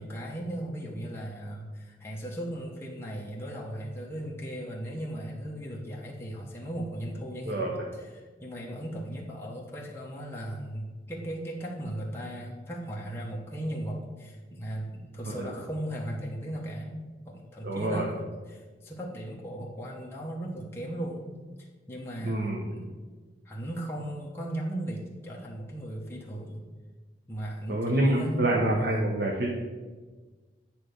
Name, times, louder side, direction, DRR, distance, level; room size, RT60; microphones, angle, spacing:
voice 1, 0.0-21.3 21.6-22.9 23.4-26.6 27.3-29.0, right 1 dB, 15° left, -4 dB, 1.0 m, -37 dB
voice 2, 17.6-18.1 22.2-22.6 27.7-29.5, right 1 dB, 65° right, -1 dB, 1.0 m, -27 dB
8.8 x 3.4 x 6.5 m, 1.3 s
head